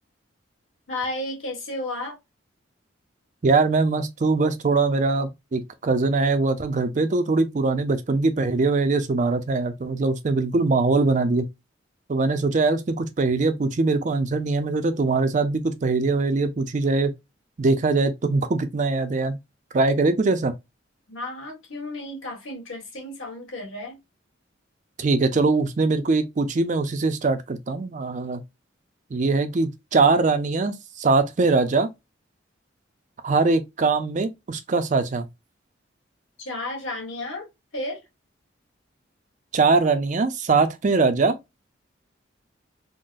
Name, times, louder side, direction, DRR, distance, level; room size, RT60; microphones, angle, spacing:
voice 1, 0.9-2.2 21.1-24.0 36.4-37.5 37.7-38.0, left 1 dB, 90° left, 1.6 m, -33 dB
voice 2, 3.4-11.4 12.1-17.1 17.6-19.4 19.7-20.5 25.0-28.4 29.1-31.9 33.2-35.3 39.5-41.4, right 3 dB, 40° right, 0.4 m, -22 dB
3.8 x 2.0 x 2.5 m
head